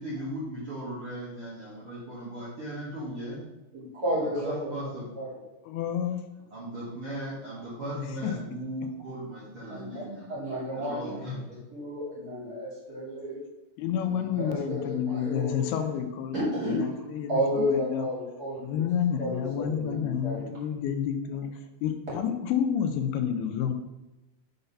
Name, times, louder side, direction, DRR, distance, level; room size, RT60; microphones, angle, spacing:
voice 1, 0.0-3.4 4.1-5.1 6.5-11.4, right 1 dB, 50° right, -8 dB, 1.8 m, -37 dB
voice 2, 3.7-5.4 9.7-10.0 10.3-11.2 11.7-13.4 14.0-15.6 16.3-16.9 17.3-18.8 19.2-20.4, equal, 30° right, -7 dB, 2.2 m, -32 dB
voice 3, 5.7-6.3 8.0-8.3 13.8-16.4 16.7-18.1 18.6-23.7, left 8 dB, 85° left, 7 dB, 2.6 m, -30 dB
6.8 x 4.0 x 5.4 m, 1.0 s
omnidirectional pair, 4.5 m